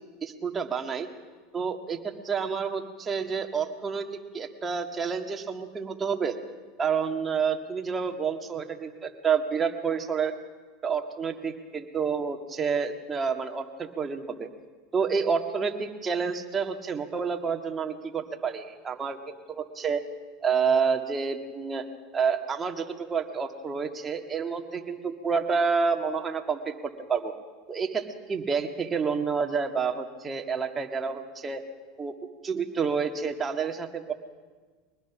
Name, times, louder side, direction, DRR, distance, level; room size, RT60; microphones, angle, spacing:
voice 1, 0.2-1.1 1.5-2.0 2.2-4.1 4.3-6.4 6.8-10.3 10.8-14.5 14.9-20.0 20.4-21.8 22.1-26.7 27.1-27.3 27.7-31.6 32.0-32.1 32.4-34.1, right 6 dB, 25° right, 4 dB, 1.9 m, -29 dB
23.0 x 19.5 x 6.1 m, 1.4 s
supercardioid pair, 110°, 0 cm